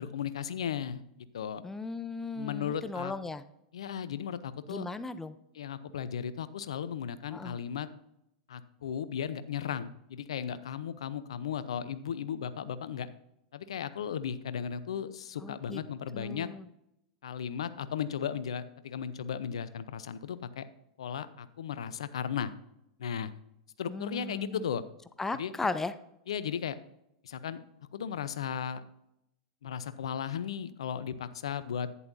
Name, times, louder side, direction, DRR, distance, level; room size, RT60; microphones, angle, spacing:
voice 1, 0.0-1.6 2.4-3.1 3.7-4.9 5.5-7.9 8.5-13.1 13.5-16.5 17.2-20.7 21.0-22.5 23.0-23.3 23.8-24.8 25.3-25.5 26.3-26.8 27.2-27.6 27.9-28.8 29.6-31.9, left 8 dB, 75° left, 14 dB, 0.7 m, -36 dB
voice 2, 1.6-3.4 4.7-5.4 7.3-7.6 15.4-15.8 16.1-16.6 23.9-24.6 25.2-25.9, left 3 dB, 10° left, 13 dB, 0.6 m, -36 dB
11.0 x 9.9 x 2.7 m, 0.81 s
hypercardioid pair, 100°, 3 cm